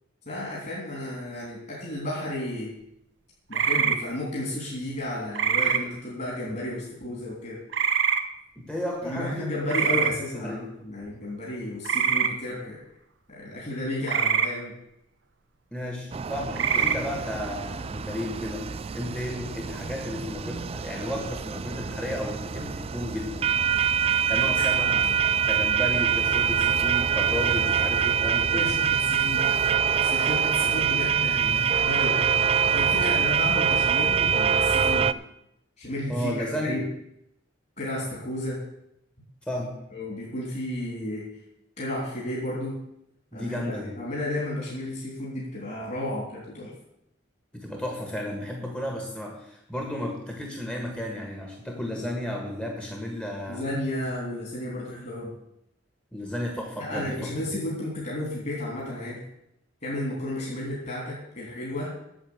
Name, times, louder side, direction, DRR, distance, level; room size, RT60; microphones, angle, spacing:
voice 1, 0.3-2.7 3.5-7.6 9.0-12.8 13.3-14.7 24.9-25.2 28.5-29.5 30.0-32.4 32.7-35.1 35.8-36.8 37.8-38.7 39.9-41.3 41.8-42.8 43.3-43.6 44.0-46.7 53.5-55.3 56.8-59.2 59.8-61.9, left 1 dB, 45° left, -4 dB, 3.4 m, -33 dB
sound 1, 3.5-4.0 5.3-5.8 7.7-8.2 9.7-10.1 11.8-12.3 14.1-14.5 16.5-17.0, right 7 dB, 65° right, 0.9 m, -23 dB
voice 2, 8.6-10.6 15.7-18.6 18.9-23.4 24.3-25.0 25.4-28.7 33.0-33.2 36.1-36.8 39.5-39.7 43.3-44.0 47.5-53.6 56.1-57.3, left 1 dB, 5° left, 0 dB, 1.6 m, -33 dB
sound 2, 16.1-35.1, right 7 dB, 30° right, 0.3 m, -25 dB
8.7 x 7.3 x 8.7 m, 0.80 s
head